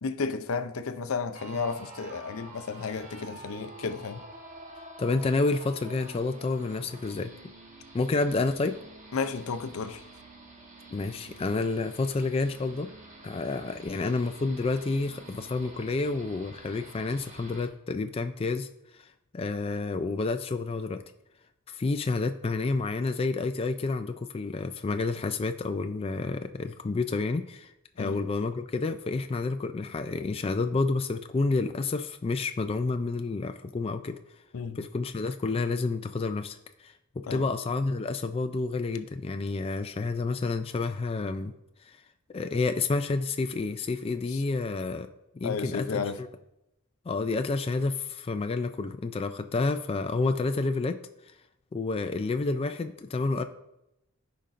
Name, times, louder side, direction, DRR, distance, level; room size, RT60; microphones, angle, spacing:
voice 1, 0.0-4.2 9.1-10.0 28.0-28.2 34.5-34.8 37.3-37.5 44.3-44.4 45.4-46.2, left 5 dB, 75° left, 0.6 m, -32 dB
sound 1, 1.3-17.7, right 2 dB, 35° right, 1.2 m, -48 dB
voice 2, 5.0-7.3 7.9-8.8 10.9-12.9 13.2-18.7 19.0-19.1 19.3-21.0 21.7-27.7 28.0-34.2 34.8-41.5 41.8-42.0 42.3-45.1 45.3-46.3 47.1-51.0 51.7-53.4, left 3 dB, 25° left, 0.3 m, -29 dB
14.5 x 5.2 x 2.5 m
head